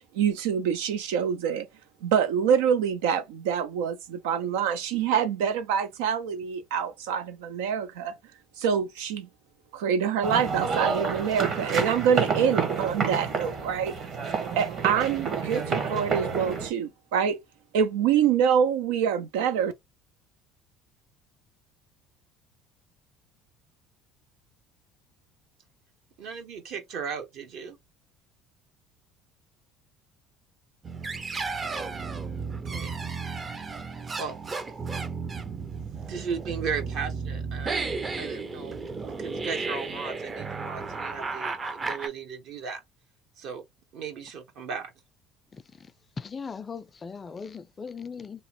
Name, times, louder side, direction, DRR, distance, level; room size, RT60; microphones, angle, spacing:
voice 1, 0.1-1.7 2.0-8.2 8.6-9.3 9.7-14.0 14.6-17.4 17.7-19.7, right 8 dB, 90° right, 0.4 m, -26 dB
sound 1, 10.2-16.7, right 5 dB, 45° right, 1.2 m, -29 dB
voice 2, 26.2-27.8 32.7-33.0 34.2-34.4 36.1-37.9 38.2-38.8 39.0-42.8 43.4-43.6 43.9-44.9, right 6 dB, 65° right, 1.0 m, -36 dB
sound 2, 30.8-42.1, right 4 dB, 30° right, 0.5 m, -33 dB
voice 3, 45.5-45.9 46.2-48.4, left 5 dB, 30° left, 0.4 m, -39 dB
2.9 x 2.0 x 3.0 m
supercardioid pair, 95°, 0 cm